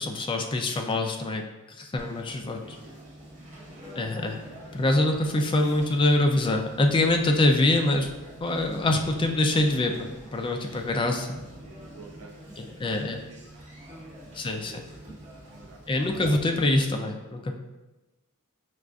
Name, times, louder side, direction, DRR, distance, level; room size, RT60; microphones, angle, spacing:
voice 1, 0.0-1.4 1.7-2.8 4.0-4.4 4.7-8.1 8.4-11.4 12.6-13.2 14.3-14.9 15.9-17.6, left 2 dB, 20° left, 3 dB, 0.3 m, -25 dB
Conversation, 2.0-16.8, right 1 dB, 30° right, 1.2 m, -46 dB
voice 2, 3.4-3.9 11.9-12.3 12.6-13.7 14.3-15.1 15.5-15.8, right 5 dB, 65° right, 1 dB, 0.4 m, -52 dB
6.0 x 2.4 x 2.3 m, 1.1 s
head